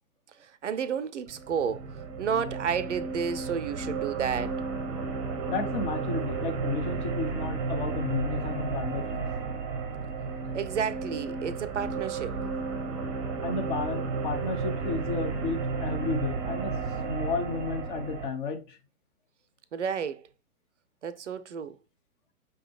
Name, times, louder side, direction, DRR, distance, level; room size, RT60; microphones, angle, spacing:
voice 1, 0.4-4.6 10.5-12.4 19.7-20.2 21.0-21.8, right 7 dB, 55° right, 0.5 m, -31 dB
sound 1, 1.3-18.3, right 4 dB, 20° right, 0.7 m, -33 dB
voice 2, 5.5-9.3 13.4-16.8 17.1-18.8, left 4 dB, 35° left, 0.8 m, -32 dB
5.4 x 3.7 x 2.2 m
figure-of-eight pair, 115°, 45 cm